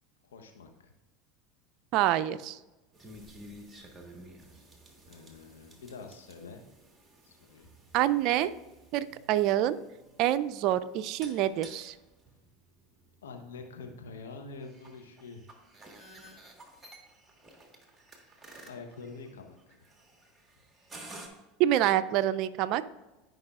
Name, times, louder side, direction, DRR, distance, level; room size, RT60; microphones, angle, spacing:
voice 1, 0.2-0.9 5.1-6.6 7.2-7.7 13.2-15.5 18.6-19.9, left 4 dB, 85° left, 4 dB, 1.0 m, -46 dB
voice 2, 1.9-2.6 7.9-8.5 8.9-9.8 10.2-11.9 21.6-22.8, right 12 dB, 55° right, 14 dB, 0.4 m, -26 dB
sound 1, 2.9-21.3, right 1 dB, 15° right, 1.6 m, -53 dB
13.5 x 5.4 x 2.4 m, 1.1 s
hypercardioid pair, 90°, 0 cm